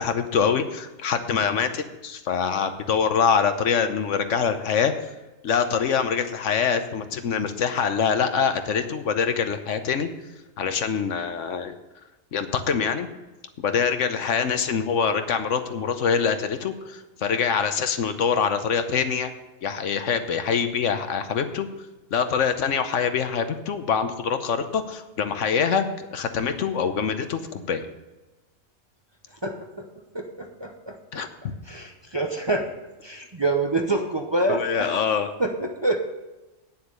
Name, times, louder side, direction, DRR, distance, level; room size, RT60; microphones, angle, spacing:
voice 1, 0.0-5.1 5.4-10.1 10.6-11.7 12.3-13.1 13.6-19.3 19.6-21.7 22.1-27.9 31.1-31.3 34.5-35.3, left 6 dB, 75° left, 9 dB, 1.2 m, -24 dB
voice 2, 29.4-29.9 30.1-31.2 31.7-32.7 33.0-35.0 35.4-36.0, right 2 dB, 25° right, 3 dB, 0.7 m, -27 dB
9.5 x 7.1 x 6.7 m, 1.1 s
omnidirectional pair, 1.3 m